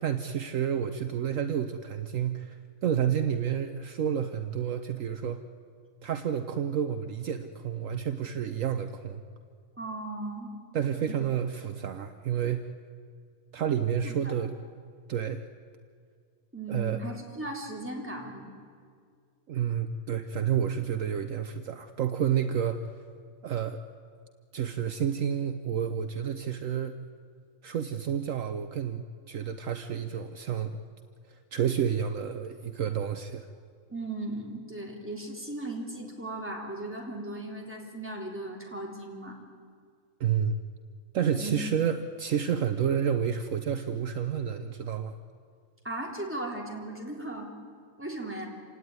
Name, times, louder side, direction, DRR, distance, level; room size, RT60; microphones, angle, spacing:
voice 1, 0.0-5.4 6.0-9.2 10.7-12.6 13.5-14.6 15.1-15.4 16.7-17.0 19.5-22.9 23.4-23.8 24.5-27.0 27.6-30.7 31.3-33.5 40.2-40.6 41.1-45.2, right 8 dB, 65° right, 8 dB, 1.2 m, -30 dB
voice 2, 9.8-10.5 11.0-11.1 14.0-14.3 16.5-18.5 33.9-39.4 41.4-41.6 45.8-47.5 48.0-48.5, right 2 dB, 10° right, -1 dB, 3.6 m, -37 dB
27.5 x 18.0 x 9.5 m, 2.1 s
omnidirectional pair, 1.5 m